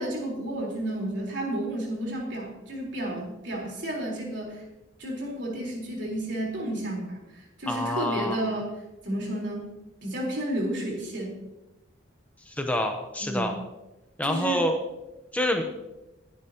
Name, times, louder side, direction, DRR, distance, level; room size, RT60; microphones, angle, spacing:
voice 1, 0.0-4.6 5.0-8.7 9.0-9.7 10.0-11.4 13.2-13.5 14.2-14.7, right 1 dB, 60° right, -2 dB, 4.1 m, -31 dB
voice 2, 7.7-8.4 12.5-13.6 14.2-14.7 15.3-15.6, left 1 dB, 10° left, 3 dB, 0.9 m, -27 dB
22.0 x 9.9 x 3.0 m, 1.0 s
head